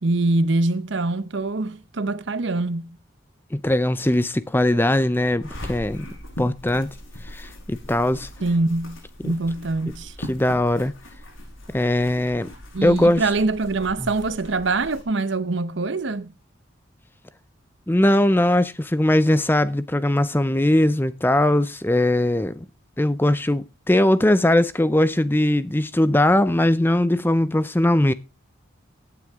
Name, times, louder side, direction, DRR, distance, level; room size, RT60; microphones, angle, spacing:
voice 1, 0.0-3.0 8.4-9.0 9.2-10.1 12.7-16.3, right 2 dB, 65° right, 0.8 m, -24 dB
voice 2, 3.5-6.1 6.4-6.9 7.2-8.3 9.2-9.4 9.9-10.9 11.7-12.5 12.8-13.3 14.0-14.1 17.9-22.7 23.0-28.1, left 1 dB, 10° left, 0.5 m, -20 dB
sound 1, 5.4-15.0, left 1 dB, 90° left, 7.2 m, -40 dB
15.5 x 9.4 x 3.6 m
head